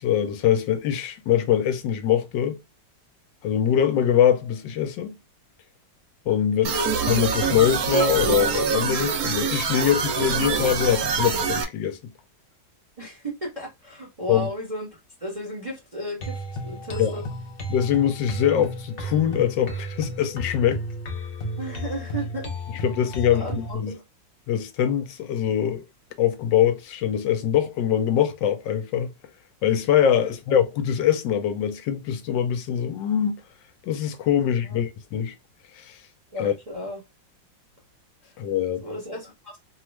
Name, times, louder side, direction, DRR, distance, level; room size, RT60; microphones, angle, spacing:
voice 1, 0.0-2.6 3.4-5.2 6.3-6.7 7.1-12.0 14.3-14.5 17.0-17.1 17.7-20.8 22.8-24.0 24.5-25.8 26.2-29.1 29.6-33.4 33.8-35.3 35.7-36.0 36.4-36.5 38.4-38.9, left 9 dB, 80° left, 1.3 m, -23 dB
sound 1, 6.6-11.6, right 5 dB, 70° right, 0.9 m, -25 dB
voice 2, 13.0-17.2 21.6-22.5 23.3-24.0 30.2-30.3 34.4-34.8 36.3-37.0 38.2-38.3 38.8-39.6, equal, 25° right, 0.9 m, -34 dB
sound 2, 16.2-23.7, equal, 60° left, 0.5 m, -33 dB
3.1 x 2.3 x 3.1 m
omnidirectional pair, 2.0 m